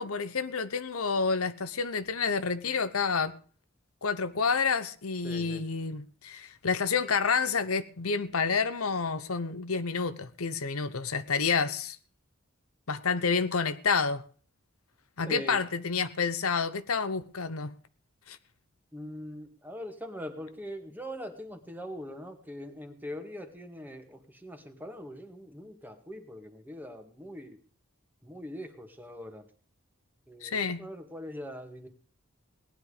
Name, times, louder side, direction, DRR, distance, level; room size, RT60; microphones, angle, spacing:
voice 1, 0.0-3.4 4.0-12.0 12.9-14.2 15.2-17.8 18.3-18.4 30.4-30.9, left 5 dB, 90° left, 1.0 m, -29 dB
voice 2, 5.2-5.6 15.3-15.6 18.9-27.6 28.2-29.5 30.3-31.9, equal, 10° right, 1.9 m, -42 dB
18.5 x 10.5 x 5.1 m
head